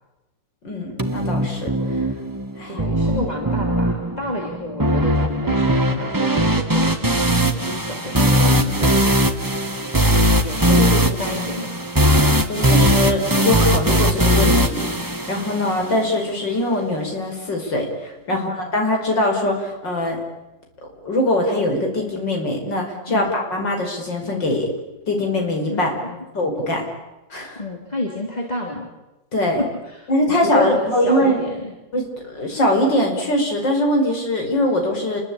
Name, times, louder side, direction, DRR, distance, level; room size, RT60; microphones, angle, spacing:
voice 1, 0.6-1.8 2.6-2.8 12.5-20.2 21.1-24.7 25.1-25.9 26.3-26.8 27.3-27.6 29.3-29.6 30.1-31.4 31.9-35.2, left 1 dB, 70° left, 2 dB, 6.1 m, -22 dB
sound 1, 1.0-16.0, equal, 10° right, 1.3 m, -19 dB
voice 2, 2.7-9.1 10.4-11.8 18.3-18.6 23.1-23.4 25.7-26.3 27.6-28.9 29.6-30.1 30.4-31.7, left 1 dB, 20° left, 0 dB, 3.5 m, -30 dB
29.5 x 22.5 x 8.8 m, 1.0 s
omnidirectional pair, 2.0 m